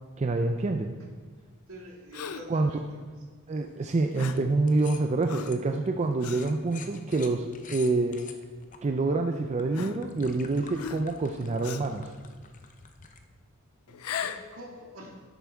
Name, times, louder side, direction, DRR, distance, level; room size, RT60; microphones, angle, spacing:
voice 1, 0.2-0.9 2.5-2.7 3.5-8.2 8.8-12.1, right 3 dB, 30° right, 5 dB, 0.4 m, -27 dB
voice 2, 1.7-3.0 13.9-15.1, equal, 70° right, -1 dB, 1.9 m, -46 dB
Gasp, 2.1-2.6 4.2-4.5 5.3-5.6 6.2-6.5 7.2-7.4 8.4-8.5 9.7-10.4 10.8-11.2 11.6-12.0 13.9-14.5, left 8 dB, 85° left, 0.5 m, -38 dB
sound 1, 4.0-4.4 4.7-8.8 9.3-13.2, left 6 dB, 35° left, 0.6 m, -48 dB
10.5 x 8.3 x 3.5 m, 1.5 s
head